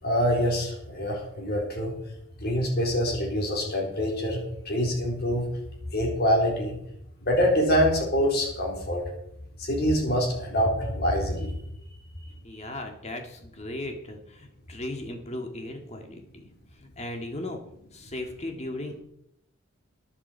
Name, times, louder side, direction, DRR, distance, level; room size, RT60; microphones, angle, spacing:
voice 1, 0.0-1.9 2.4-5.5 5.9-6.8 7.2-9.0 9.6-11.6, equal, 50° left, 0 dB, 4.0 m, -25 dB
voice 2, 12.4-16.5 16.8-17.6 17.9-19.0, left 1 dB, 30° left, 4 dB, 1.9 m, -37 dB
15.0 x 10.0 x 4.6 m, 0.77 s
head